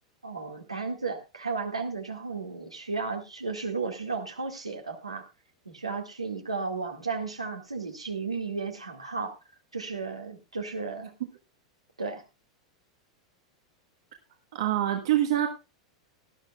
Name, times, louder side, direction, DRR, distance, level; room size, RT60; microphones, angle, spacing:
voice 1, 0.2-5.2 5.7-9.3 9.7-11.1 12.0-12.2, right 4 dB, 85° right, 2 dB, 2.1 m, -34 dB
voice 2, 14.5-15.5, right 12 dB, 60° right, 3 dB, 1.5 m, -25 dB
18.5 x 12.0 x 2.4 m, 0.27 s
figure-of-eight pair, 90°, 3 cm